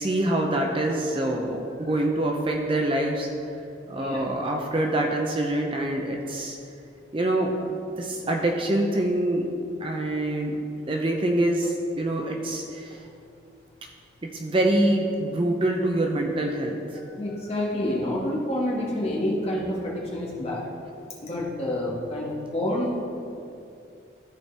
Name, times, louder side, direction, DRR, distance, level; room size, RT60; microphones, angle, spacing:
voice 1, 0.0-3.3 3.9-6.6 7.1-9.5 9.8-10.6 10.9-13.0 14.2-17.0, right 1 dB, 30° right, 2 dB, 0.5 m, -25 dB
voice 2, 17.0-20.6 21.2-23.0, left 1 dB, 30° left, -4 dB, 1.4 m, -28 dB
13.5 x 4.5 x 3.3 m, 2.6 s
head